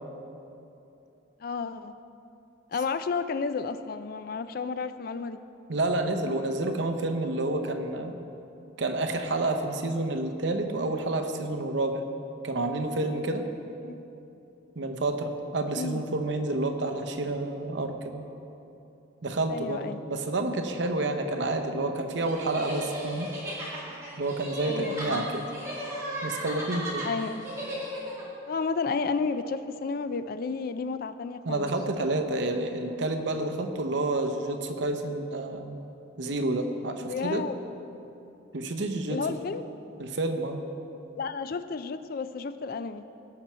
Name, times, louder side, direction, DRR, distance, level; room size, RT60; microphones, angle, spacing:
voice 1, 1.4-1.9 2.7-5.4 13.8-14.0 15.7-16.0 19.5-20.0 24.6-25.4 27.0-27.4 28.5-31.7 37.1-37.6 39.1-39.7 41.2-43.0, left 4 dB, 50° left, 12 dB, 0.4 m, -32 dB
voice 2, 5.7-8.1 8.8-12.0 12.4-13.5 14.8-18.3 19.2-23.3 24.2-25.5 26.2-27.1 31.5-35.8 36.2-37.4 38.5-39.2 40.0-40.6, right 2 dB, 65° right, 6 dB, 0.8 m, -29 dB
sound 1, 22.2-28.2, equal, 15° right, 2.1 m, -36 dB
17.5 x 6.0 x 4.3 m, 2.9 s
head